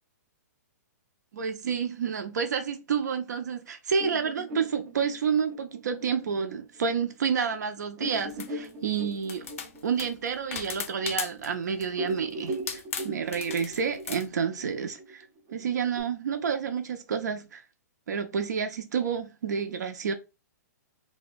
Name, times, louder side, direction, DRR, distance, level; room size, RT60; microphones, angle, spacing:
voice 1, 1.3-9.5 9.8-15.2 15.5-17.6 18.1-20.1, right 6 dB, 75° right, 0.6 m, -29 dB
sound 1, 4.0-7.1 7.5-7.6 8.0-11.6 11.9-16.0, right 1 dB, 15° right, 0.4 m, -39 dB
sound 2, 8.2-8.7 9.2-11.5 11.8-12.1 12.5-14.3, left 7 dB, 50° left, 0.5 m, -37 dB
2.7 x 2.2 x 3.9 m
hypercardioid pair, 175°, 9 cm